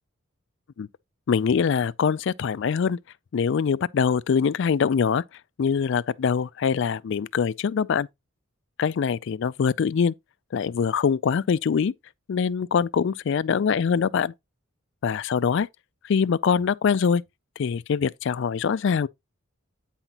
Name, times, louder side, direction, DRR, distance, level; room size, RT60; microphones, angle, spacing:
voice 1, 1.3-3.0 3.3-5.2 5.6-8.1 8.8-10.1 10.5-11.9 12.3-14.3 15.0-15.7 16.0-17.2 17.6-19.1, left 6 dB, 60° left, 0.3 m, -23 dB
9.0 x 5.7 x 2.9 m
head